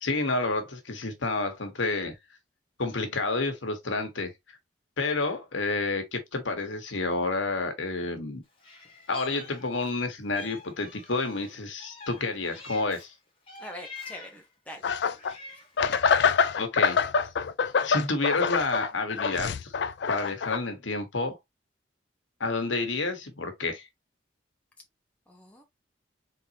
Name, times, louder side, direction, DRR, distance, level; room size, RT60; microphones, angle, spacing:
voice 1, 0.0-2.1 2.8-4.3 5.0-8.4 9.1-13.1 16.6-17.0 17.8-19.7 20.1-21.4 22.4-23.9, left 3 dB, 85° left, 1.2 m, -29 dB
Meow, 8.6-10.0 10.3-13.1 13.5-14.5 15.0-15.8, left 4 dB, 30° left, 1.6 m, -46 dB
voice 2, 13.6-15.0 25.3-25.6, left 1 dB, 5° left, 1.0 m, -44 dB
sound 1, 14.8-15.3 15.8-20.6, left 6 dB, 65° left, 0.4 m, -25 dB
4.0 x 3.7 x 2.8 m
head